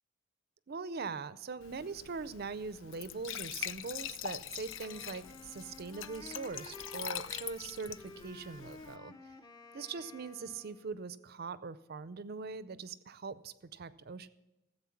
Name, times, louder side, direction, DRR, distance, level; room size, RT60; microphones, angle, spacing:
voice 1, 0.7-9.1 9.7-14.3, right 4 dB, 45° right, 16 dB, 0.5 m, -42 dB
Glass / Trickle dribble / Fill (with liquid), 1.6-9.0, left 9 dB, 60° left, 0.4 m, -43 dB
Wind instrument woodwind instrument, 4.8-11.0, left 2 dB, 20° left, 0.6 m, -52 dB
15.0 x 7.9 x 5.8 m, 0.99 s
head